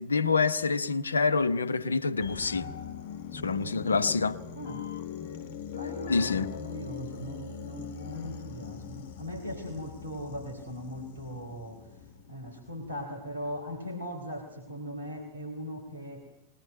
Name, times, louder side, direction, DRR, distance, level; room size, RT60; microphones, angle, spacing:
voice 1, 0.0-2.7 3.3-4.4 6.1-6.5, left 4 dB, 75° left, 0.9 m, -27 dB
sound 1, 2.2-13.2 13.6-13.7, left 7 dB, 55° left, 1.2 m, -41 dB
voice 2, 5.7-11.9 12.3-16.3, equal, 75° right, 3.9 m, -39 dB
21.5 x 20.0 x 9.0 m
figure-of-eight pair, 90°, 0 cm